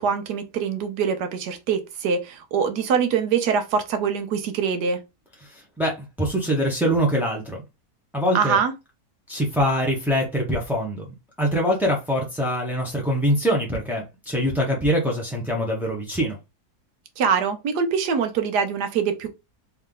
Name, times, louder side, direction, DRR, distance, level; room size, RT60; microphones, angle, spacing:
voice 1, 0.0-5.0 8.3-8.7 17.2-19.3, right 6 dB, 80° right, 1.4 m, -24 dB
voice 2, 5.5-7.6 8.1-8.6 9.3-11.1 11.4-16.4, equal, ahead, 0.4 m, -24 dB
3.5 x 3.2 x 3.7 m
omnidirectional pair, 1.7 m